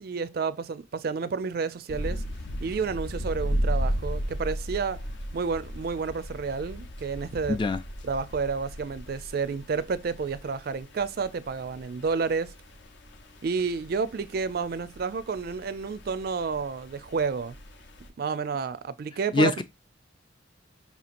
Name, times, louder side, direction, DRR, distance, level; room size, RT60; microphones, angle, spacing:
voice 1, 0.0-2.2 2.6-5.0 5.3-7.6 8.0-12.5 13.4-17.6 18.2-19.6, right 5 dB, 50° right, 0.4 m, -30 dB
sound 1, 1.9-18.1, equal, 65° left, 0.7 m, -36 dB
voice 2, 7.5-7.8 19.3-19.6, left 2 dB, 25° left, 0.3 m, -23 dB
5.6 x 2.8 x 2.5 m
head